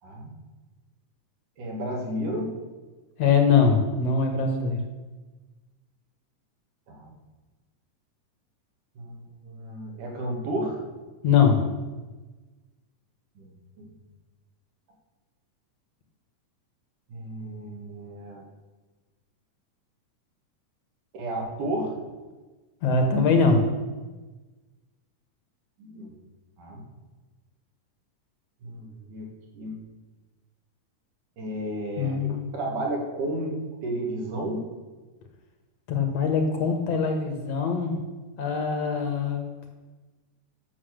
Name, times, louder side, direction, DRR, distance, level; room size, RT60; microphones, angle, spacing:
voice 1, 0.0-0.3 1.6-2.5 6.9-7.1 9.0-10.8 13.4-13.9 17.1-18.5 21.1-21.9 25.8-26.1 26.6-26.8 28.6-29.3 29.5-29.8 31.4-34.6, right 1 dB, 80° right, -1 dB, 3.6 m, -32 dB
voice 2, 3.2-4.8 11.2-11.6 22.8-23.6 32.0-32.5 35.9-38.0 38.4-39.5, left 5 dB, 65° left, 4 dB, 2.1 m, -22 dB
9.7 x 7.0 x 6.6 m, 1.2 s
omnidirectional pair, 3.6 m